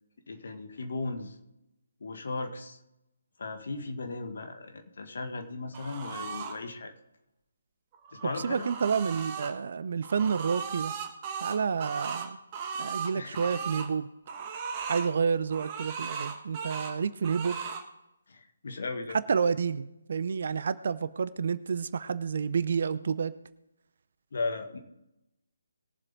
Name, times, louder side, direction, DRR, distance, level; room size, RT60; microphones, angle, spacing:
voice 1, 0.3-1.4 2.0-2.8 3.4-6.9 8.1-8.7 13.1-13.5 18.3-19.2 24.3-24.8, left 3 dB, 55° left, 6 dB, 1.8 m, -36 dB
sound 1, 5.7-6.5 7.9-9.5 10.0-13.9 14.3-15.1 15.5-16.9 17.2-17.8, right 6 dB, 25° right, 1.6 m, -37 dB
voice 2, 8.4-10.9 11.4-12.4 12.8-14.1 14.9-17.6 19.3-23.3, right 6 dB, 50° right, 16 dB, 0.6 m, -29 dB
21.0 x 7.6 x 3.7 m, 0.90 s
figure-of-eight pair, 145°, 0 cm